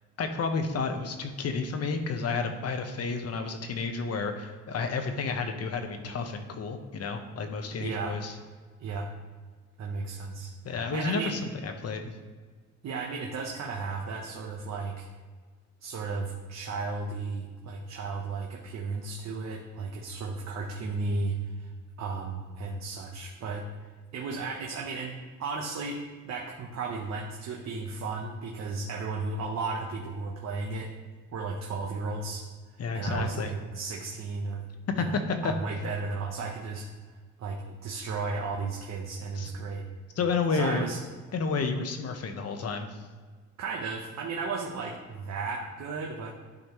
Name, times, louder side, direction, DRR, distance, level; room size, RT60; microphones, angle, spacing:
voice 1, 0.2-8.3 10.6-12.1 32.8-33.5 35.0-35.1 35.4-35.5 39.4-39.5 40.2-40.8 41.3-42.9, left 4 dB, 55° left, 6 dB, 1.1 m, -31 dB
voice 2, 7.8-8.2 8.8-9.1 9.8-10.5 10.9-11.4 12.8-15.1 15.8-21.7 22.0-23.6 24.1-25.1 25.4-26.0 26.2-30.9 31.3-32.4 32.9-34.6 35.0-35.2 35.4-36.9 37.4-39.8 40.5-41.0 43.6-46.3, right 4 dB, 60° right, 0 dB, 1.0 m, -34 dB
11.0 x 5.1 x 3.1 m, 1.5 s
cardioid pair, 90°, 30 cm